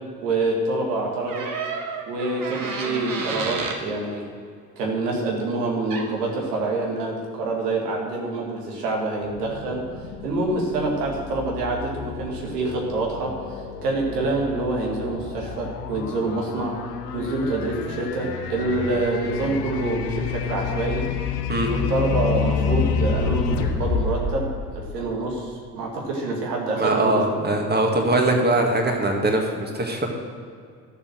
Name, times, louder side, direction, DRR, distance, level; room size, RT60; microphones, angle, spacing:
voice 1, 0.0-1.5 2.1-4.3 4.8-9.8 10.2-16.7 17.1-21.0 21.7-27.2, right 2 dB, 75° right, -1 dB, 2.2 m, -26 dB
sound 1, 1.3-3.8 5.9-6.1, right 4 dB, 45° right, 1.7 m, -30 dB
sound 2, 9.2-25.5, left 5 dB, 75° left, 0.9 m, -29 dB
voice 2, 26.8-30.1, right 2 dB, 20° right, 2 dB, 2.2 m, -21 dB
13.0 x 7.3 x 6.3 m, 2.2 s
figure-of-eight pair, 50°, 48 cm